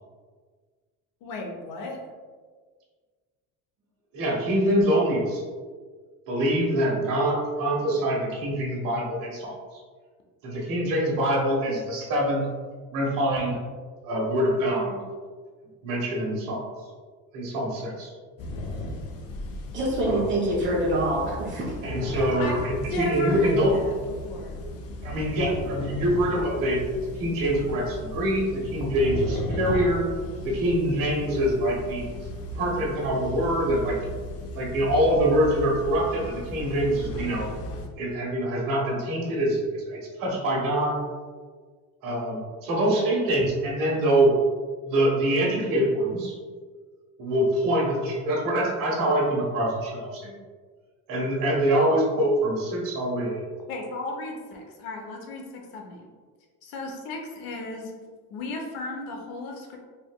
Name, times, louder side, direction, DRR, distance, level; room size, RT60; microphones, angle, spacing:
voice 1, 1.2-2.1 22.4-24.5 53.7-56.1 56.6-57.9 58.3-59.8, left 2 dB, 75° left, 1 dB, 0.8 m, -35 dB
voice 2, 4.1-5.4 6.3-9.8 10.4-12.4 12.9-13.6 14.0-15.0 15.8-16.6 17.3-18.1 20.0-20.3 21.8-23.7 24.6-24.7 25.0-30.1 30.4-32.0 32.5-34.0 34.5-37.4 38.0-41.0 42.0-44.3 44.8-46.3 47.2-50.3 51.1-53.4, right 1 dB, 65° right, -3 dB, 1.3 m, -25 dB
sound 1, 18.4-37.9, left 1 dB, 45° left, 0.5 m, -36 dB
voice 3, 19.7-21.7 22.1-22.6, right 1 dB, 30° right, -4 dB, 1.2 m, -26 dB
4.2 x 2.9 x 2.2 m, 1.5 s
cardioid pair, 135°, 36 cm